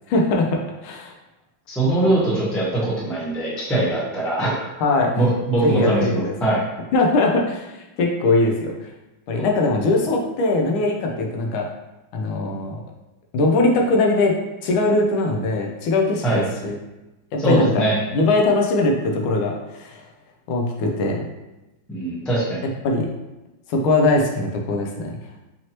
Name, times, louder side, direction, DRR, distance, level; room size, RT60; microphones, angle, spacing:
voice 1, 0.1-1.1 4.8-5.3 5.6-6.3 6.9-8.7 9.3-11.7 12.1-12.8 13.3-16.8 17.3-20.0 20.5-21.3 22.6-23.2 23.7-25.2, left 2 dB, 85° left, 1 dB, 1.5 m, -21 dB
voice 2, 1.7-4.5 5.2-6.6 16.2-16.4 17.4-18.0 21.9-22.6, right 2 dB, ahead, -6 dB, 0.4 m, -21 dB
4.6 x 2.9 x 2.9 m, 1.0 s
omnidirectional pair, 2.2 m